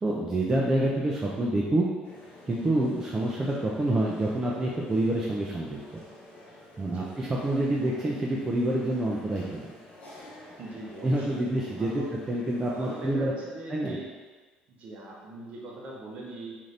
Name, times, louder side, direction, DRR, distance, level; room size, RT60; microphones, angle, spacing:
voice 1, 0.0-1.9 2.5-6.0 6.8-9.7 11.0-13.3 13.7-14.0, right 1 dB, 15° right, -4 dB, 0.3 m, -27 dB
sound 1, 2.0-13.2, left 1 dB, 55° left, 0.9 m, -50 dB
voice 2, 10.6-12.1 12.7-14.1 14.7-16.6, right 2 dB, 45° right, -3 dB, 0.7 m, -41 dB
2.6 x 2.5 x 3.2 m, 1.3 s
cardioid pair, 140°, 3 cm